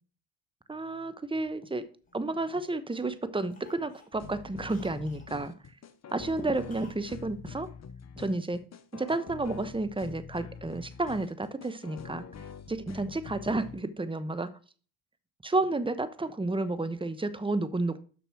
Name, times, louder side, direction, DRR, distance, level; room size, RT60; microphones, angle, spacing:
voice 1, 0.7-1.9 2.1-5.5 6.1-7.7 8.2-8.6 8.9-12.2 12.7-14.5 15.4-18.0, right 2 dB, 10° right, 1.1 m, -31 dB
Cough, 1.3-2.6 2.9-3.2 3.5-5.3 6.7-7.1 7.3-7.4, left 3 dB, 20° left, 3.4 m, -58 dB
sound 1, 4.1-13.8, left 7 dB, 40° left, 1.0 m, -45 dB
6.9 x 6.1 x 6.0 m
hypercardioid pair, 60°, 41 cm